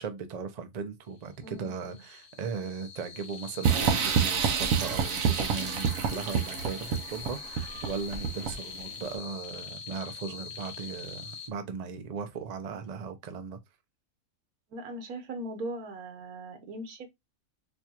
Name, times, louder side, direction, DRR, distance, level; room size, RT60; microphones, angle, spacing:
voice 1, 0.0-13.6, right 5 dB, 50° right, 0.4 m, -38 dB
sound 1, 1.4-11.5, left 6 dB, 80° left, 1.3 m, -43 dB
voice 2, 1.4-2.0 14.7-17.1, right 1 dB, 90° right, 1.4 m, -39 dB
sound 2, 3.6-8.8, right 7 dB, 70° right, 1.1 m, -28 dB
4.4 x 2.3 x 2.8 m
omnidirectional pair, 1.5 m